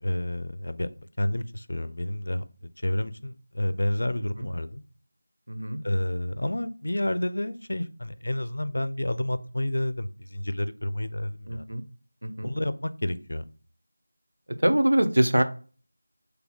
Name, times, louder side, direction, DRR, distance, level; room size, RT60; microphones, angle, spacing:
voice 1, 0.0-2.4 2.8-4.8 5.8-11.6 12.4-13.5, left 1 dB, 70° left, 13 dB, 0.4 m, -30 dB
voice 2, 5.5-5.8 11.5-11.8 12.2-12.5 14.6-15.4, right 1 dB, 90° right, 8 dB, 0.6 m, -23 dB
3.9 x 2.7 x 3.9 m, 0.40 s
figure-of-eight pair, 175°, 0 cm